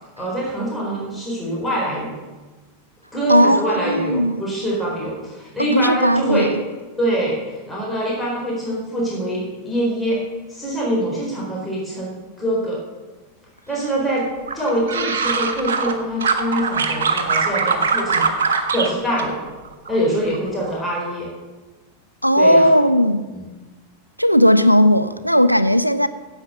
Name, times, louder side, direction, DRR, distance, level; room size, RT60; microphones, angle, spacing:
voice 1, 0.2-2.1 3.1-6.5 7.0-10.2 10.5-12.8 13.7-14.3 14.5-19.4 19.9-21.3 22.3-22.7 23.3-23.5, right 1 dB, 5° left, 3.9 m, -24 dB
voice 2, 3.3-4.4 5.7-6.5 22.2-23.2 24.2-26.1, equal, 90° right, 0.5 m, -16 dB
sound 1, 14.5-15.9 16.2-18.9 19.2-20.0 20.3-20.7, right 5 dB, 65° right, 1.3 m, -21 dB
10.5 x 8.0 x 6.7 m
figure-of-eight pair, 90°, 0 cm